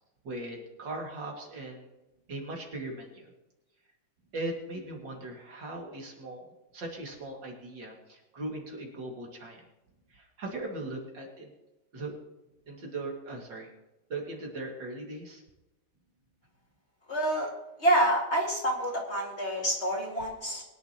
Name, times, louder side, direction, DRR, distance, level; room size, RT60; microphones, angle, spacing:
voice 1, 0.2-1.9 2.3-3.3 4.3-9.6 10.1-11.5 11.9-12.1 12.7-13.7 14.1-15.4, right 2 dB, 60° right, 0 dB, 2.9 m, -39 dB
voice 2, 17.1-17.5 17.8-20.6, right 1 dB, 30° left, -1 dB, 2.3 m, -27 dB
22.5 x 10.5 x 2.9 m, 1.0 s
omnidirectional pair, 2.2 m